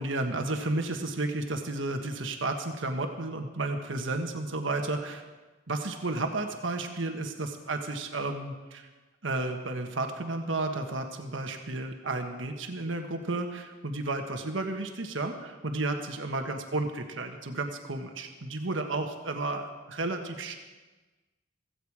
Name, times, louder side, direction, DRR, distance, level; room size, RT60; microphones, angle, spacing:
voice 1, 0.0-5.2 5.7-8.9 9.2-20.6, right 2 dB, 85° right, 4 dB, 1.5 m, -32 dB
16.0 x 15.5 x 4.9 m, 1.3 s
head